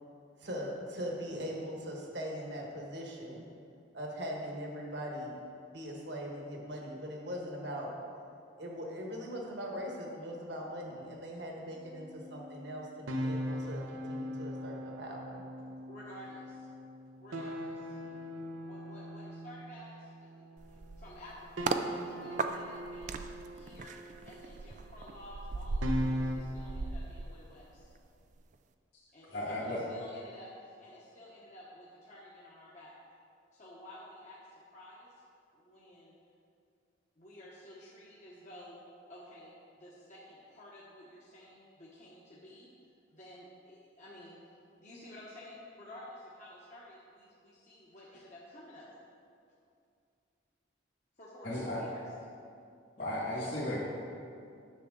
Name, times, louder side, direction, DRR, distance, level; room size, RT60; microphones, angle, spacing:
voice 1, 0.4-3.4 3.9-5.4 5.7-7.9 8.6-15.4, equal, 60° right, -1 dB, 1.4 m, -40 dB
sound 1, 11.7-21.0 21.6-26.4, equal, 85° right, 0.8 m, -40 dB
voice 2, 15.8-16.7 17.2-18.0 18.6-21.8 22.1-23.3 23.5-27.9 29.1-32.9 33.5-35.1 35.5-36.1 37.2-38.8 39.1-42.7 43.1-44.4 44.8-49.0 51.2-52.0, left 1 dB, 40° left, -7 dB, 1.0 m, -52 dB
sound 2, 20.6-21.9 22.4-28.0 28.3-28.5, right 3 dB, 40° right, 0.3 m, -38 dB
voice 3, 29.3-29.8 51.4-51.8 53.0-53.8, left 1 dB, 55° left, -11 dB, 2.0 m, -35 dB
9.9 x 7.0 x 3.9 m, 2.5 s
head